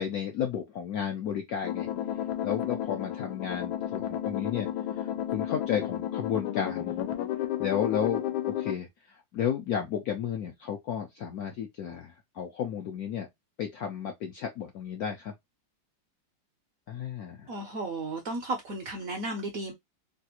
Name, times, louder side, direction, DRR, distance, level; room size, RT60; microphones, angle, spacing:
voice 1, 0.0-1.9 2.4-4.7 5.0-6.9 7.6-13.3 13.6-15.3 16.9-17.5, left 8 dB, 75° left, 0.8 m, -33 dB
sound 1, 1.6-8.7, left 11 dB, 90° left, 1.4 m, -32 dB
voice 2, 17.5-19.7, right 2 dB, 70° right, 0.8 m, -34 dB
3.3 x 2.3 x 2.8 m
omnidirectional pair, 2.1 m